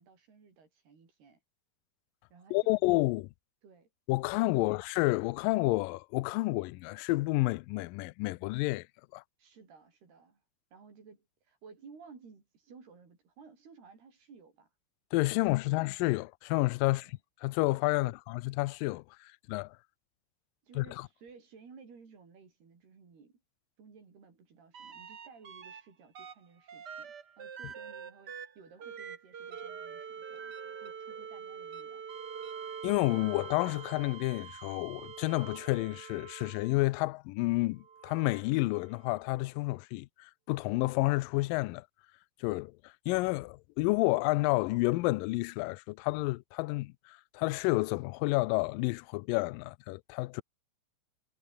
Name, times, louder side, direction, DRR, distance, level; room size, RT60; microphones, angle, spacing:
voice 1, 0.0-1.4 2.3-2.8 3.6-3.9 4.6-4.8 9.4-10.4 10.7-14.7 15.3-15.8 16.9-17.2 18.0-18.2 20.6-23.4 23.8-32.0, right 5 dB, 75° right, 7.7 m, -56 dB
voice 2, 2.5-3.2 4.1-8.9 9.1-9.2 15.1-17.1 17.4-19.8 20.8-20.9 32.8-41.9 42.4-50.4, left 22 dB, 90° left, 1.9 m, -30 dB
sound 1, 24.7-25.8 26.1-36.9 37.8-39.3 41.1-41.2, right 7 dB, 60° right, 1.1 m, -45 dB
omnidirectional pair, 4.6 m